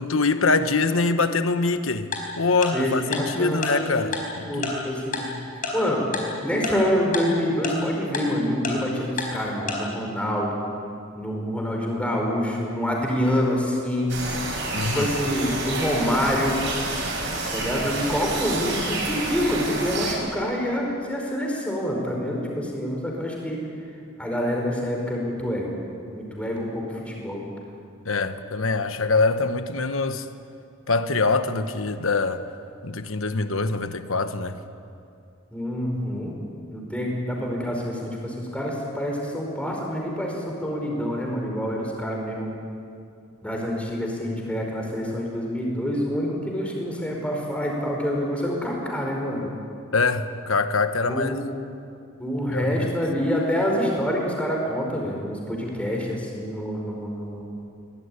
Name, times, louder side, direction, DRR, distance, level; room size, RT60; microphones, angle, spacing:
voice 1, 0.0-2.1 2.4-4.7 14.7-15.1 28.0-30.3 30.9-32.4 32.8-34.6 49.9-51.4 52.5-52.9, left 3 dB, 80° left, 10 dB, 1.2 m, -24 dB
Tick-tock, 2.1-2.2 2.6-2.7 3.1-3.2 3.6-3.7 4.1-4.2 4.6-4.7 5.1-5.2 5.6-5.7 6.1-6.2 6.6-6.7 7.1-7.2 7.6-7.7 8.1-8.2 8.6-8.7 9.2-9.3 9.7-9.8, left 5 dB, 40° left, 4.7 m, -27 dB
voice 2, 2.7-4.0 4.5-5.3 5.5-6.1 6.4-10.7 11.1-14.2 14.9-16.6 17.5-23.7 24.2-25.8 26.1-27.4 35.5-36.3 36.7-42.5 43.4-49.5 51.0-51.5 52.2-57.4, equal, 5° left, 0 dB, 4.9 m, -26 dB
sound 1, 14.1-20.1, right 2 dB, 60° right, 7.1 m, -29 dB
22.5 x 18.0 x 9.8 m, 2.5 s
head